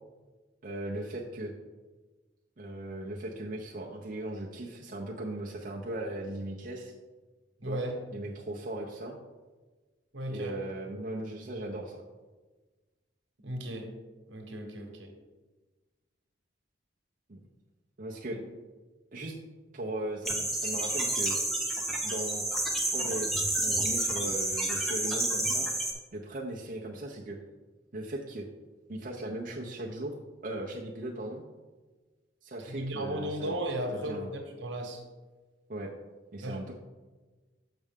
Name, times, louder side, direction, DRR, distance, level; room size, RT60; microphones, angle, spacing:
voice 1, 0.6-1.5 2.6-6.9 7.7-7.8 8.1-9.2 10.3-12.0 17.3-17.4 18.0-18.4 19.1-19.3 19.7-21.4 22.0-22.4 22.9-25.7 26.1-27.4 27.9-28.4 28.9-30.1 30.4-31.4 32.4-33.6 33.9-34.3 35.7-35.9 36.3-36.7, right 1 dB, 45° right, -3 dB, 0.6 m, -38 dB
voice 2, 7.6-8.0 10.1-10.5 13.4-13.9 14.3-15.1 18.3-18.4 32.7-35.0 36.4-36.6, right 1 dB, 75° right, 3 dB, 1.2 m, -35 dB
sound 1, 20.3-25.9, right 1 dB, ahead, 0.7 m, -30 dB
6.5 x 6.0 x 3.5 m, 1.3 s
head